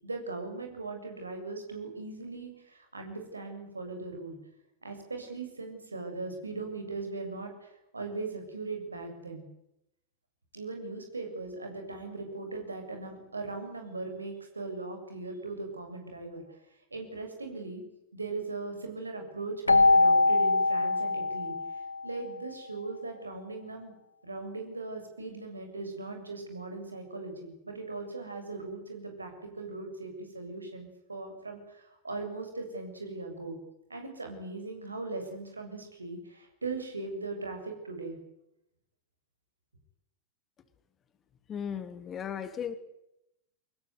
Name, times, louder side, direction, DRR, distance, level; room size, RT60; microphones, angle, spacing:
voice 1, 0.0-4.4 4.8-9.5 10.5-16.6 16.9-17.8 18.1-23.9 24.2-33.6 33.9-38.2, right 3 dB, 80° right, 4 dB, 7.3 m, -39 dB
Keyboard (musical), 19.7-22.3, left 3 dB, 80° left, 0.9 m, -23 dB
voice 2, 41.5-42.7, left 8 dB, 25° left, 10 dB, 3.0 m, -36 dB
24.5 x 21.0 x 9.6 m, 0.83 s
figure-of-eight pair, 90°, 0 cm